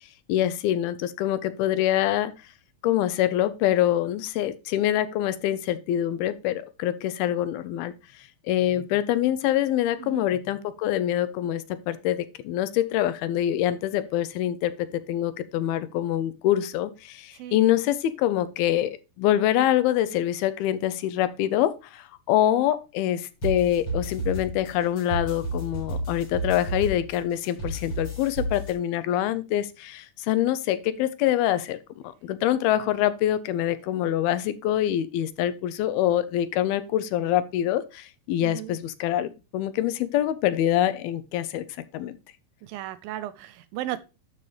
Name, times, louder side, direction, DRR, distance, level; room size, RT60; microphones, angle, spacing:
voice 1, 0.3-2.3 2.8-7.9 8.5-31.8 32.0-41.6 41.9-42.1, left 12 dB, 85° left, 2.6 m, -25 dB
voice 2, 10.0-10.3 17.3-17.6 38.4-38.8 42.6-44.0, right 13 dB, 80° right, 2.2 m, -35 dB
sound 1, 23.4-28.7, right 1 dB, 35° left, 4.1 m, -32 dB
12.0 x 5.5 x 3.3 m
omnidirectional pair, 4.3 m